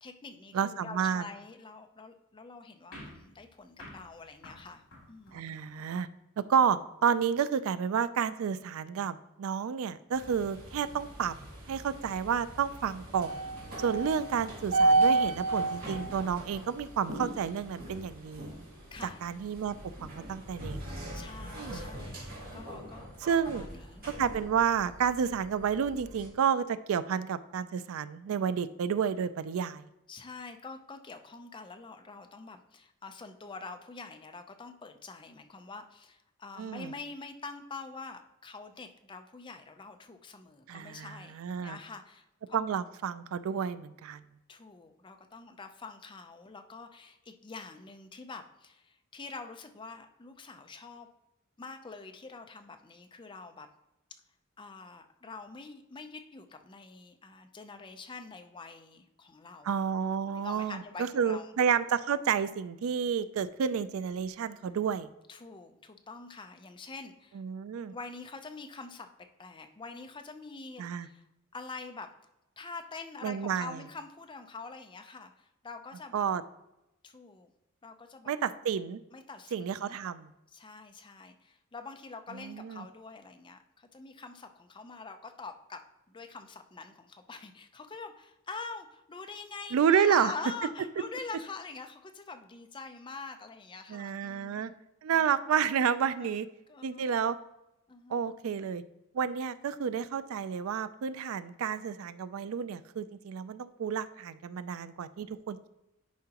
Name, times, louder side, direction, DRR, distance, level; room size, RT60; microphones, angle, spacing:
voice 1, 0.0-4.8 5.1-5.5 18.9-19.2 21.1-23.1 23.4-24.1 30.1-42.6 44.5-51.1 51.6-53.7 54.6-59.7 60.3-61.5 65.3-67.4 67.9-69.1 69.4-71.2 71.5-72.1 72.6-76.3 77.0-77.5 77.8-78.3 79.1-80.0 80.5-94.7 95.1-95.2 96.2-96.3 96.7-97.1 97.9-98.2, left 4 dB, 20° left, 6 dB, 0.5 m, -45 dB
voice 2, 0.5-1.3 5.3-6.1 6.5-11.3 11.7-13.4 13.8-18.5 19.0-19.7 20.0-20.8 21.5-21.8 23.2-23.7 24.2-29.8 36.6-36.9 40.7-41.8 42.5-44.2 59.6-65.1 67.3-67.9 70.8-71.1 73.2-73.8 76.1-76.4 78.3-79.0 79.5-80.3 82.3-82.9 89.7-90.3 93.9-94.7 95.0-96.5 96.8-97.4 98.1-98.8 99.1-105.7, right 7 dB, 70° right, 15 dB, 0.3 m, -30 dB
sound 1, 2.9-5.8, left 1 dB, 70° left, 2.5 m, -51 dB
sound 2, 10.1-26.3, right 3 dB, 40° right, 1.8 m, -34 dB
10.5 x 4.8 x 2.9 m, 0.90 s
head